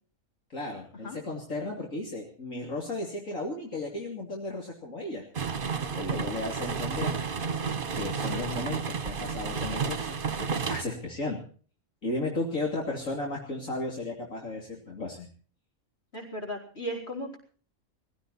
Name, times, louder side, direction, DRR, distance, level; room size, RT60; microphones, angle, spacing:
voice 1, 0.5-5.2 5.9-7.2 7.9-11.4 12.0-15.3, left 2 dB, 70° left, -1 dB, 3.4 m, -34 dB
sound 1, 5.3-10.8, right 6 dB, 40° right, 1.2 m, -31 dB
voice 2, 16.1-17.4, equal, 50° left, 3 dB, 5.5 m, -36 dB
21.0 x 16.0 x 4.2 m, 0.42 s
omnidirectional pair, 1.4 m